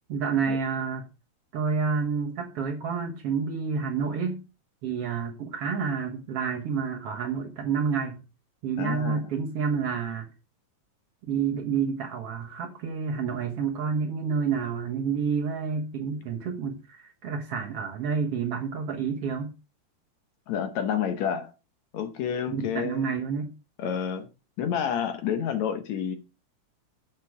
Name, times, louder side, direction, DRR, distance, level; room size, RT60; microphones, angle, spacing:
voice 1, 0.1-1.1 1.5-4.4 4.8-8.2 8.6-10.3 11.3-19.5 22.5-23.5, right 6 dB, 60° right, 1.8 m, -29 dB
voice 2, 8.8-9.2 20.5-21.5 21.9-23.1 23.8-24.3 24.6-26.2, left 8 dB, 65° left, 2.1 m, -29 dB
7.5 x 7.4 x 4.7 m
omnidirectional pair, 3.7 m